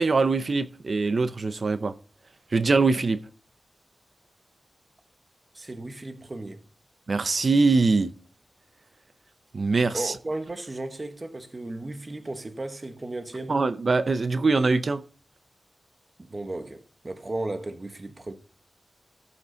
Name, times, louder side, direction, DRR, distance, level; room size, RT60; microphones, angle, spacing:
voice 1, 0.0-1.9 2.5-3.2 7.1-8.1 9.5-10.1 13.5-15.0, right 3 dB, 55° right, 0.6 m, -23 dB
voice 2, 5.5-6.6 9.9-13.6 16.2-18.3, right 2 dB, 35° right, 1.1 m, -35 dB
13.5 x 5.9 x 3.9 m
wide cardioid pair, 85°, 0 cm